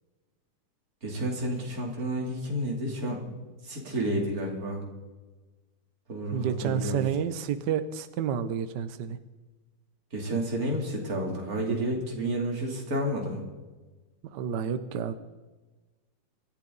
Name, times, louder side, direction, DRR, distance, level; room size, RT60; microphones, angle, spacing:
voice 1, 1.0-3.2 3.6-4.8 6.1-7.0 10.1-13.4, right 1 dB, 40° right, -1 dB, 3.4 m, -30 dB
voice 2, 6.3-9.2 14.3-15.1, right 8 dB, 65° right, 10 dB, 1.3 m, -30 dB
26.0 x 11.5 x 4.0 m, 1.2 s
omnidirectional pair, 2.4 m